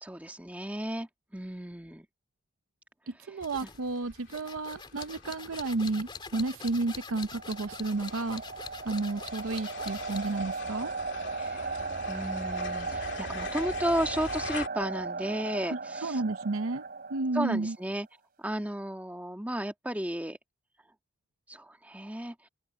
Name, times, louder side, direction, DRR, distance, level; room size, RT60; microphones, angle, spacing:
voice 1, 0.0-2.0 11.4-11.7 12.1-16.2 17.3-18.1 18.4-20.4 21.5-22.5, right 1 dB, 5° right, 1.6 m, -34 dB
voice 2, 3.1-8.4 8.8-10.9 15.7-16.8 17.1-17.8, right 3 dB, 80° right, 0.7 m, -32 dB
sound 1, 3.4-10.4, left 5 dB, 20° left, 2.7 m, -44 dB
sound 2, 3.5-14.7, left 4 dB, 55° left, 3.2 m, -44 dB
sound 3, 6.9-17.8, right 4 dB, 45° right, 3.2 m, -37 dB
head